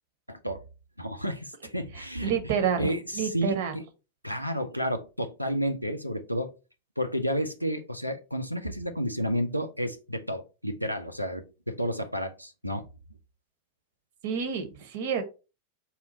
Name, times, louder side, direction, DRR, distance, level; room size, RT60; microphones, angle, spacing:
voice 1, 0.3-0.6 1.0-2.3 2.8-3.8 4.2-6.5 7.0-12.8, equal, 90° right, 0.5 m, -31 dB
voice 2, 2.2-3.8 14.2-15.2, right 7 dB, 55° right, 0.7 m, -29 dB
4.2 x 2.3 x 4.0 m
figure-of-eight pair, 90°, 0 cm